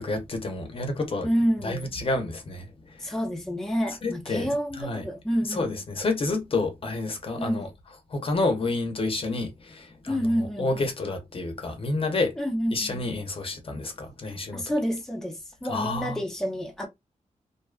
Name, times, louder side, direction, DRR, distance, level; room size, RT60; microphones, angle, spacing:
voice 1, 0.0-1.3 1.6-3.1 4.0-5.1 5.5-7.7 8.1-12.4 12.7-14.6 15.7-16.2, left 2 dB, 45° left, 0.6 m, -29 dB
voice 2, 1.2-1.8 3.0-5.7 7.4-7.7 10.1-10.7 12.4-13.0 14.5-16.9, equal, 5° left, 0.5 m, -28 dB
2.6 x 2.2 x 2.3 m
wide cardioid pair, 115°, 13 cm